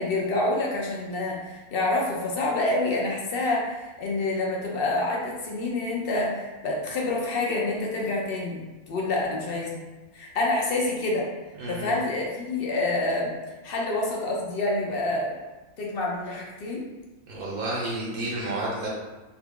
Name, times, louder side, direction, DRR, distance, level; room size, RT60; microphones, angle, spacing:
voice 1, 0.0-8.6 8.9-9.8 10.1-11.3 11.7-13.3 13.6-15.3 15.8-16.8, left 2 dB, 60° left, -2 dB, 0.6 m, -27 dB
voice 2, 11.6-11.9 17.3-18.9, right 1 dB, 75° right, -5 dB, 1.2 m, -30 dB
2.9 x 2.3 x 3.5 m, 1.2 s
omnidirectional pair, 1.5 m